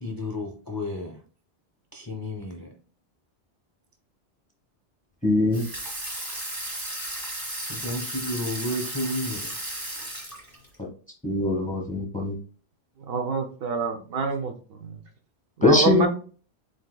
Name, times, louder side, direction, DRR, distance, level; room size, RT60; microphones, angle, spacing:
voice 1, 0.0-1.2 1.9-2.7 7.7-9.5, left 1 dB, 25° left, 1 dB, 0.5 m, -32 dB
voice 2, 5.2-5.7 10.8-10.9 11.2-12.4 15.6-16.1, left 2 dB, 5° left, 2 dB, 0.9 m, -22 dB
Water tap faucet / Sink (filling or washing), 5.5-10.8, right 1 dB, 20° right, 1.3 m, -34 dB
voice 3, 13.1-14.5 14.8-15.0 15.7-16.1, right 4 dB, 60° right, 5 dB, 0.8 m, -26 dB
7.5 x 2.8 x 2.2 m, 0.40 s
omnidirectional pair, 1.2 m